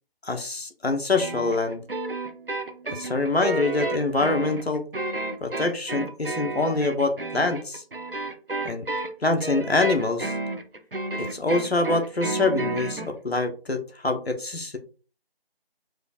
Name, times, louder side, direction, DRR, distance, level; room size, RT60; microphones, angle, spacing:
voice 1, 0.2-1.8 2.9-4.9 5.4-7.8 8.6-8.9 9.2-10.3 11.2-14.8, left 3 dB, 85° left, 5 dB, 1.2 m, -25 dB
sound 1, 1.1-13.1, right 2 dB, 65° right, 0.9 m, -31 dB
4.9 x 2.5 x 4.2 m, 0.36 s
figure-of-eight pair, 180°, 30 cm